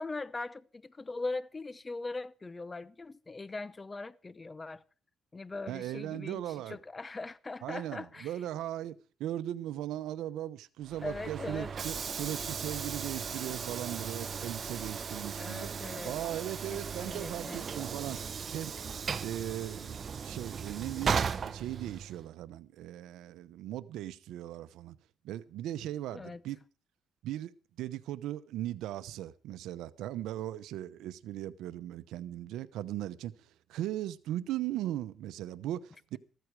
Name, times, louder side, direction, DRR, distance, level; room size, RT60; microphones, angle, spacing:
voice 1, 0.0-4.8 5.3-8.4 11.0-11.7 15.3-16.2 16.7-17.7 26.1-26.4, left 3 dB, 25° left, 0.8 m, -40 dB
voice 2, 5.7-6.8 7.6-8.9 9.2-15.7 16.0-18.8 19.2-25.0 25.2-26.6 27.2-27.5 27.8-33.3 33.7-36.2, right 13 dB, 90° right, 0.9 m, -38 dB
Train / Sliding door, 10.8-22.3, right 6 dB, 45° right, 0.9 m, -37 dB
14.0 x 14.0 x 4.8 m
cardioid pair, 90°, 0 cm